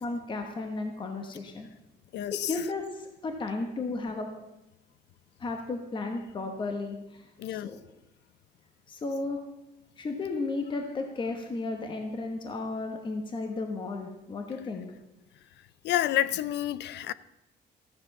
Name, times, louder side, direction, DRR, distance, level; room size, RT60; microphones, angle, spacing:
voice 1, 0.0-1.7 2.3-4.3 5.4-7.8 8.9-9.4 10.0-14.9, left 3 dB, 25° left, 1.1 m, -34 dB
voice 2, 2.1-2.5 7.4-7.7 15.8-17.1, left 13 dB, 75° left, 0.5 m, -29 dB
14.5 x 6.9 x 7.0 m
cardioid pair, 175°, 18 cm